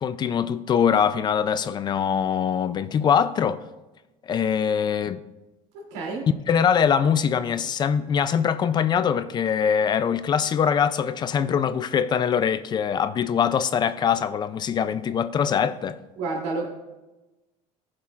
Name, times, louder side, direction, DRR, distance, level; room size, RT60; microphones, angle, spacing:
voice 1, 0.0-3.6 4.3-5.2 6.5-16.0, left 7 dB, 30° left, 0.4 m, -23 dB
voice 2, 5.7-6.3 16.2-16.7, right 3 dB, 90° right, 2.9 m, -30 dB
19.0 x 7.4 x 2.5 m
cardioid pair, 145°, 14 cm